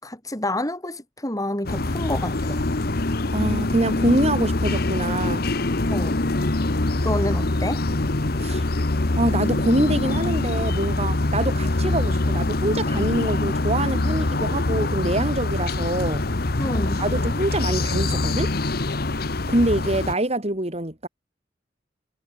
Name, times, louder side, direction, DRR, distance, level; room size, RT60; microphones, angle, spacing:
voice 1, 0.0-2.6 5.9-6.2 7.0-7.8 16.6-17.0, left 1 dB, 20° left, 7.9 m, -28 dB
sound 1, 1.7-20.2, left 2 dB, 60° left, 1.3 m, -24 dB
voice 2, 3.3-5.4 8.4-8.6 9.2-16.2 17.0-18.5 19.5-21.1, right 1 dB, 35° right, 5.5 m, -25 dB
head